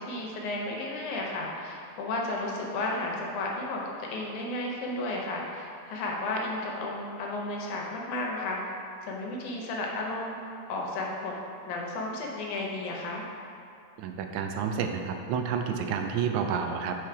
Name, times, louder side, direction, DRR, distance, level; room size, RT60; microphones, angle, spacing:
voice 1, 0.0-8.7 9.0-10.4 10.7-11.3 11.7-13.3, left 2 dB, 85° left, -1 dB, 2.3 m, -33 dB
voice 2, 14.0-17.0, right 6 dB, 85° right, 5 dB, 2.0 m, -30 dB
5.6 x 4.6 x 4.7 m, 2.5 s
omnidirectional pair, 3.4 m